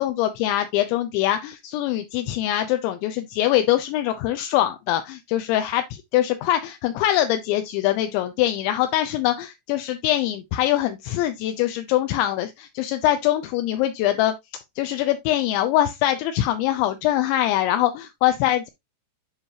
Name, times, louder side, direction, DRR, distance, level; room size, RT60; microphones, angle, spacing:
voice 1, 0.0-5.8 6.1-14.3 14.8-18.7, left 13 dB, 85° left, 2.6 m, -23 dB
9.9 x 4.8 x 2.7 m
omnidirectional pair, 5.9 m